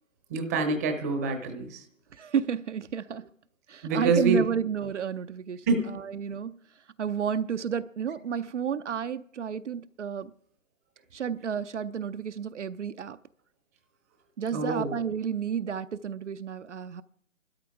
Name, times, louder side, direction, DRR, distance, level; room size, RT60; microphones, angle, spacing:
voice 1, 0.3-1.8 3.8-4.5 5.7-6.0 14.5-14.9, right 3 dB, 15° right, 0.7 m, -26 dB
voice 2, 2.1-3.3 3.7-6.6 7.0-10.3 11.1-13.2 14.4-17.0, right 7 dB, 60° right, 0.6 m, -31 dB
27.0 x 12.5 x 3.5 m
figure-of-eight pair, 150°, 40 cm